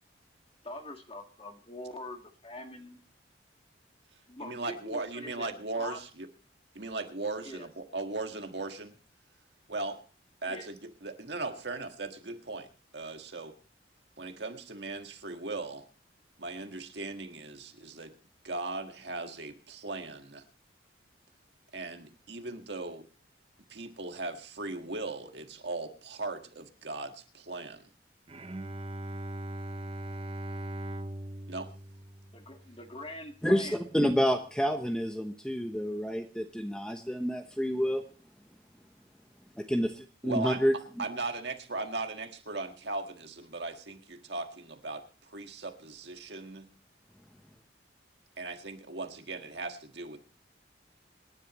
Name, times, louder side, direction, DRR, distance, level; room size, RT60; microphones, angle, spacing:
voice 1, 0.6-3.0 4.3-5.5 5.8-6.0 7.4-7.7 10.5-10.7 32.3-33.8, left 2 dB, 30° left, 4 dB, 1.8 m, -43 dB
voice 2, 4.4-6.3 6.8-8.9 9.7-10.0 10.4-13.5 14.2-15.8 16.4-18.1 18.4-20.5 21.7-23.1 23.7-27.9 31.5-31.7 40.2-40.6 41.0-46.7 48.4-50.2, right 3 dB, 65° right, 6 dB, 1.7 m, -38 dB
Bowed string instrument, 28.3-33.6, right 1 dB, 30° right, 0.7 m, -40 dB
voice 3, 33.4-38.0 39.6-40.7, equal, 5° left, 5 dB, 0.9 m, -29 dB
26.5 x 10.5 x 3.0 m, 0.37 s
head